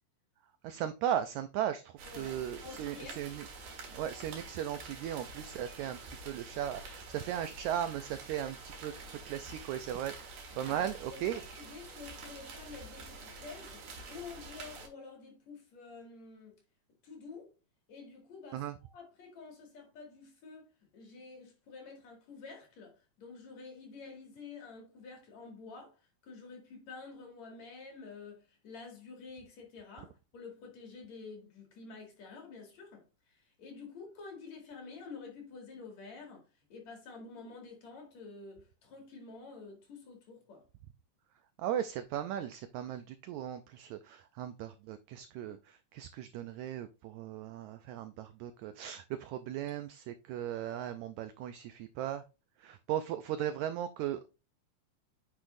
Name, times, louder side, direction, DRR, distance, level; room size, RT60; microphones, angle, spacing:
voice 1, 0.6-3.4 3.9-10.1 10.6-11.4 18.5-18.7 41.6-52.2 52.6-54.3, right 10 dB, 85° right, 1.6 m, -37 dB
sound 1, 2.0-14.9, right 3 dB, 65° right, 2.9 m, -47 dB
voice 2, 2.1-3.3 10.6-16.6 17.0-17.5 17.9-40.6, left 4 dB, 55° left, 3.2 m, -49 dB
8.9 x 5.8 x 2.5 m
omnidirectional pair, 3.9 m